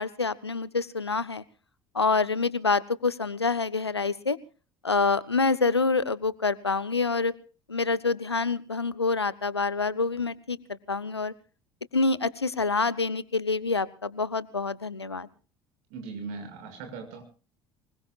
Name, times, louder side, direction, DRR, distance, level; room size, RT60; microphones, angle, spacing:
voice 1, 0.0-1.4 1.9-4.4 4.8-7.3 7.7-11.3 11.9-15.3, left 4 dB, 90° left, 19 dB, 0.8 m, -27 dB
voice 2, 15.9-17.2, right 4 dB, 60° right, 6 dB, 6.2 m, -39 dB
25.0 x 21.0 x 2.4 m, 0.37 s
figure-of-eight pair, 65°, 13 cm